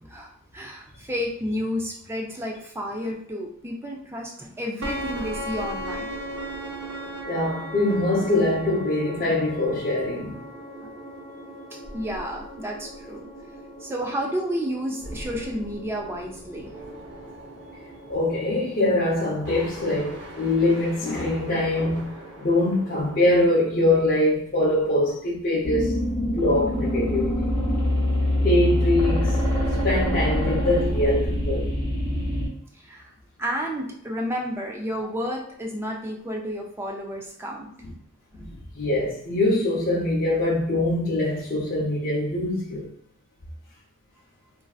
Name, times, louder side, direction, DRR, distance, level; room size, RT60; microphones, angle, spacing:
voice 1, 0.0-6.1 10.8-10.9 11.9-13.3 13.8-16.7 32.8-33.1 33.4-37.7, equal, 10° right, 0.4 m, -31 dB
sound 1, 4.8-23.2, equal, 55° right, 0.6 m, -38 dB
voice 2, 7.3-10.4 18.1-27.5 28.4-29.4 29.8-31.7 37.8-37.9 38.4-42.9, left 1 dB, 40° left, 0.6 m, -23 dB
sound 2, 25.6-32.5, left 1 dB, 10° left, 1.2 m, -24 dB
3.2 x 2.6 x 2.3 m
head